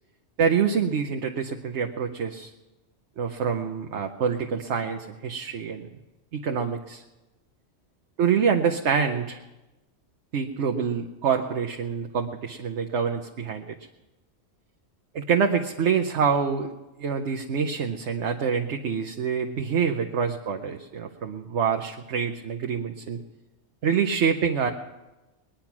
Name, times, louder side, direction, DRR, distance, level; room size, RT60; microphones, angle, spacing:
voice 1, 0.4-2.5 3.2-5.9 6.3-7.0 8.2-9.4 10.3-13.7 15.1-16.7 17.0-23.2 23.8-24.7, right 6 dB, 75° right, 3 dB, 1.1 m, -26 dB
20.5 x 10.5 x 5.9 m, 1.1 s
omnidirectional pair, 1.2 m